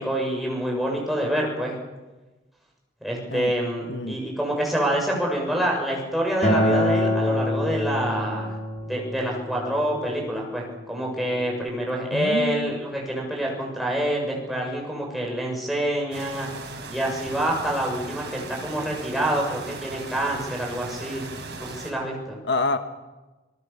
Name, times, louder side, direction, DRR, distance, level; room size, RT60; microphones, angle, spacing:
voice 1, 0.0-1.8 3.0-8.5 8.8-16.5 16.9-21.2 21.6-22.4, right 1 dB, ahead, -2 dB, 7.1 m, -27 dB
voice 2, 3.9-4.2 12.1-12.8 22.4-22.8, left 2 dB, 70° left, 8 dB, 1.3 m, -27 dB
Acoustic guitar, 6.4-11.6, left 1 dB, 35° left, 3.8 m, -26 dB
sound 1, 16.1-21.9, right 3 dB, 70° right, 5.8 m, -38 dB
27.0 x 19.5 x 7.2 m, 1.1 s
head